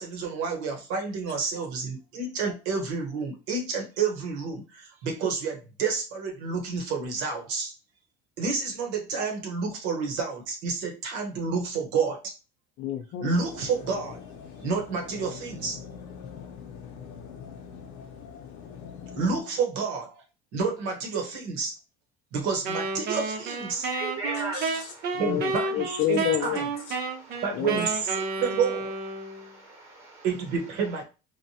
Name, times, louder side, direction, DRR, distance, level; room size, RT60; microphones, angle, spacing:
voice 1, 0.0-7.7 8.4-12.3 13.2-14.3 14.6-15.8 19.1-20.2 20.5-21.7 22.3-23.9 25.2-26.6 27.4-28.9 30.2-31.0, right 5 dB, 85° right, 1.1 m, -29 dB
voice 2, 12.8-13.3 24.3-27.0 27.5-27.8, left 11 dB, 50° left, 0.4 m, -30 dB
sound 1, 13.3-19.4, left 7 dB, 85° left, 0.7 m, -43 dB
Wind instrument woodwind instrument, 22.6-29.5, right 3 dB, 55° right, 0.7 m, -31 dB
voice 3, 23.8-24.6 27.1-27.4 29.2-30.2, right 2 dB, 15° right, 0.9 m, -37 dB
3.3 x 2.2 x 2.7 m
cardioid pair, 155°, 20 cm